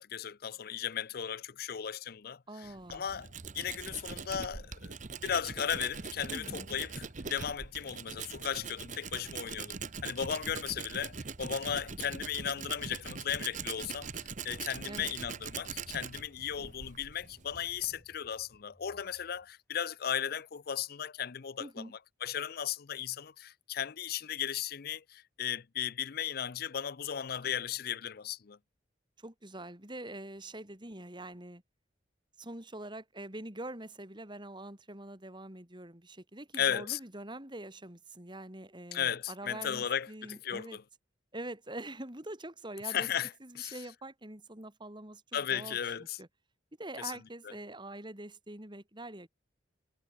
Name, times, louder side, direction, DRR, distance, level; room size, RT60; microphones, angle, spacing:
voice 1, 0.0-4.9 5.2-28.6 36.6-37.0 38.9-40.8 42.8-43.3 43.6-43.8 45.3-46.2 47.0-47.1 47.4-47.5, left 9 dB, 55° left, 0.5 m, -36 dB
voice 2, 2.5-3.1 6.3-6.7 14.9-15.1 21.6-21.9 29.2-31.6 32.4-40.8 41.3-43.1 43.4-46.3 46.8-49.3, right 1 dB, 25° right, 3.9 m, -44 dB
Tools, 2.6-18.0, right 5 dB, 40° right, 0.9 m, -42 dB
sound 1, 14.2-19.5, equal, 10° left, 8.0 m, -64 dB
head